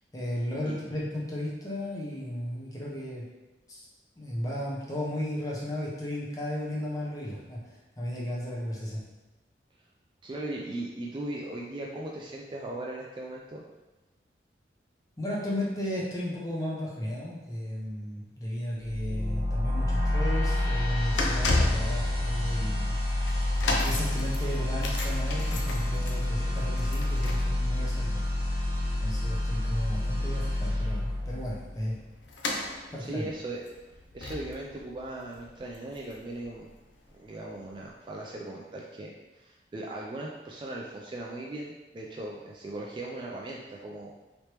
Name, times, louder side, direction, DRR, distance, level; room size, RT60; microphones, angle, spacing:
voice 1, 0.1-3.3 3.7-3.9 4.2-9.1 15.2-23.0 23.6-28.2 29.0-32.0 32.9-33.3, left 1 dB, 20° left, -5 dB, 0.7 m, -34 dB
voice 2, 10.2-13.6 33.1-33.6 34.1-36.7 37.2-44.1, right 2 dB, 25° right, -2 dB, 0.3 m, -38 dB
sound 1, 18.8-31.9, left 1 dB, 60° right, 1.0 m, -29 dB
sound 2, 20.1-36.5 36.7-37.0 37.7-37.8, left 2 dB, 90° left, 0.5 m, -36 dB
3.2 x 3.0 x 2.9 m, 1.1 s
head